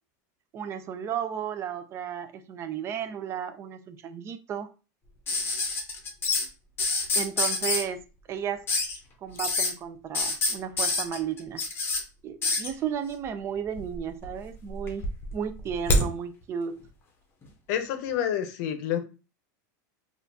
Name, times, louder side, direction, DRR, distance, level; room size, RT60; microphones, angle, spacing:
voice 1, 0.5-4.7 7.1-8.0 8.3-8.6 9.2-11.6 12.2-15.1 15.3-16.8, right 8 dB, 25° right, 9 dB, 0.4 m, -33 dB
sound 1, 5.3-6.4 6.8-7.8 8.7-9.0 9.4-9.7 10.1-12.0 12.4-12.7 13.7-14.3 14.7-16.1 17.4-17.5, left 2 dB, 20° left, 0.8 m, -26 dB
voice 2, 17.7-19.0, left 10 dB, 60° left, 8 dB, 0.7 m, -28 dB
4.2 x 2.4 x 2.7 m, 0.33 s
supercardioid pair, 145°, 10 cm